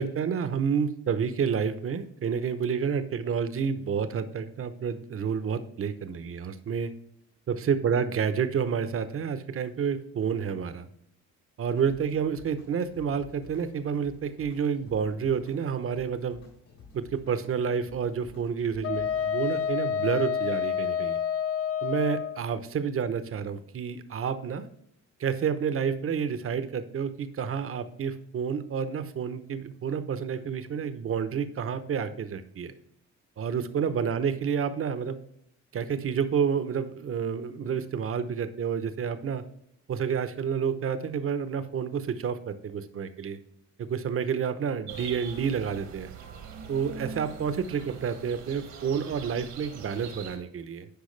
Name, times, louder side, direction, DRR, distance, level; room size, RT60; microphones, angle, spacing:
voice 1, 0.0-6.9 7.5-10.9 11.6-16.4 16.9-21.2 21.8-24.7 25.2-32.7 33.4-35.2 35.7-39.4 39.9-43.4 43.8-46.1 46.7-50.9, right 7 dB, 45° right, 11 dB, 0.8 m, -29 dB
sound 1, 11.7-19.7, left 4 dB, 70° left, 3.2 m, -53 dB
Wind instrument woodwind instrument, 18.8-22.4, left 8 dB, 50° left, 0.6 m, -28 dB
sound 2, 44.9-50.4, right 6 dB, 80° right, 1.6 m, -43 dB
10.5 x 4.7 x 3.2 m, 0.76 s
cardioid pair, 90°, 30 cm